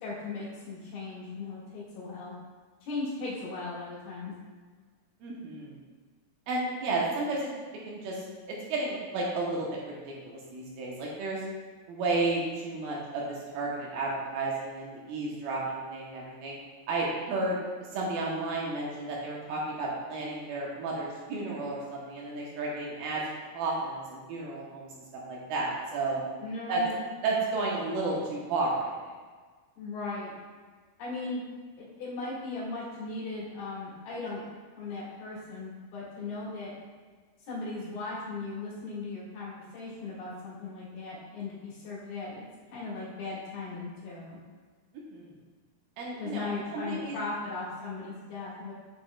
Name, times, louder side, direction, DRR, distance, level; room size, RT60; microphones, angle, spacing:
voice 1, 0.0-2.3 2.8-4.3 26.4-27.1 29.8-30.3 31.0-31.4 31.8-34.4 34.8-36.7 37.5-44.4 46.2-48.7, left 3 dB, 70° left, -8 dB, 3.6 m, -37 dB
voice 2, 5.2-5.8 6.5-7.5 7.8-11.4 11.9-16.6 16.9-17.6 17.9-23.2 23.5-25.0 25.3-26.2 26.7-26.8 27.2-29.1 45.1-45.4 46.0-47.2, right 2 dB, 75° right, -4 dB, 2.5 m, -32 dB
8.8 x 5.6 x 2.2 m, 1.5 s
omnidirectional pair, 4.7 m